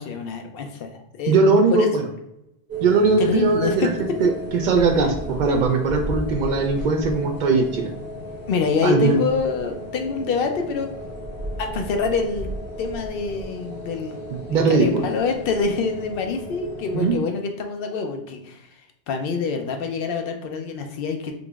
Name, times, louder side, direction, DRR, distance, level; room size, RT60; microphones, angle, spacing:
voice 1, 0.0-1.9 3.2-4.2 8.5-10.9 11.6-12.5 12.8-14.2 14.5-18.7 19.1-21.3, left 4 dB, 65° left, 4 dB, 0.7 m, -26 dB
voice 2, 1.3-2.0 2.8-3.9 4.2-4.3 4.6-7.9 8.8-9.2 14.5-15.0 16.9-17.2, right 4 dB, 60° right, 3 dB, 0.5 m, -19 dB
sound 1, 2.7-17.2, equal, 20° right, 1.3 m, -35 dB
3.9 x 2.9 x 2.3 m, 0.83 s
omnidirectional pair, 1.1 m